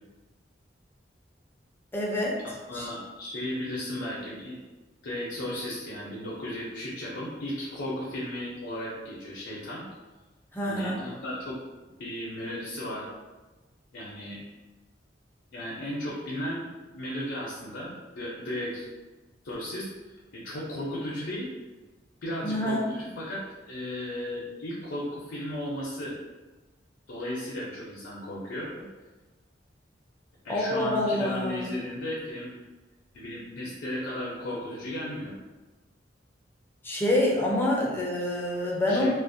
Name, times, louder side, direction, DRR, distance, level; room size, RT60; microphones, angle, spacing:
voice 1, 1.9-2.4 2.7-2.9 10.5-11.0 22.4-22.9 30.5-31.7 36.8-39.1, left 1 dB, 10° left, -4 dB, 0.4 m, -27 dB
voice 2, 2.4-4.6 5.0-9.8 10.6-13.1 13.9-14.4 15.5-18.9 19.4-19.9 20.3-21.5 22.2-26.1 27.1-28.9 30.4-32.5 33.1-35.3 38.9-39.1, left 1 dB, 75° left, -6 dB, 0.5 m, -35 dB
2.4 x 2.0 x 2.6 m, 1.2 s
head